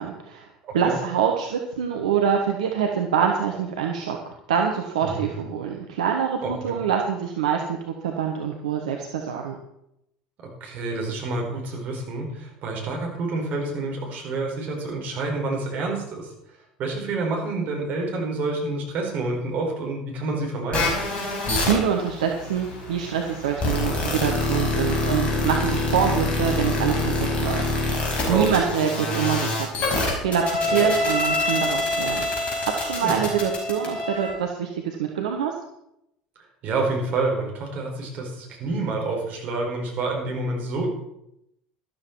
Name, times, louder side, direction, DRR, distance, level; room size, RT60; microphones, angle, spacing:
voice 1, 0.0-0.5 0.7-4.2 4.5-9.6 21.2-29.9 30.2-35.6, right 7 dB, 70° right, 2 dB, 1.2 m, -25 dB
voice 2, 0.6-1.0 5.0-5.3 6.4-6.7 10.4-16.3 16.8-20.9 28.2-28.5 30.7-30.9 33.0-33.2 36.6-40.9, right 3 dB, 45° right, -1 dB, 4.7 m, -28 dB
sound 1, 20.7-34.3, left 2 dB, 30° left, 5.1 m, -26 dB
13.0 x 12.5 x 4.7 m, 0.81 s
figure-of-eight pair, 70°, 4 cm